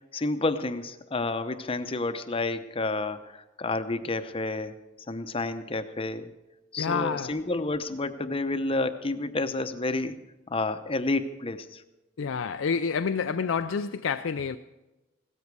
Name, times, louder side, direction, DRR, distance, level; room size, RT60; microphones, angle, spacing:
voice 1, 0.1-4.8 5.1-6.3 6.7-10.2 10.5-11.8, left 2 dB, 30° left, 0.8 m, -30 dB
voice 2, 6.8-7.4 12.2-14.6, left 6 dB, 80° left, 0.5 m, -28 dB
16.5 x 13.5 x 4.7 m
head